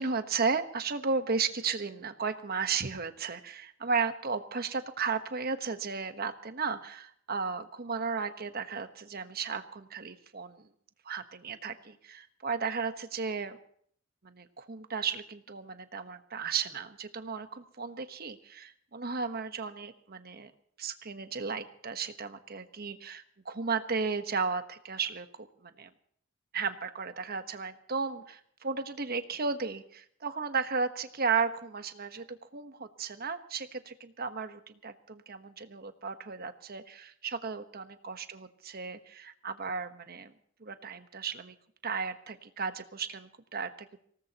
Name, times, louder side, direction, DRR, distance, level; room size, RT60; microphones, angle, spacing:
voice 1, 0.0-10.7 11.0-13.6 14.2-20.5 20.8-25.9 26.5-40.3 40.6-41.5 41.8-44.0, right 5 dB, 50° right, 9 dB, 1.2 m, -34 dB
24.5 x 18.5 x 3.0 m, 0.62 s
head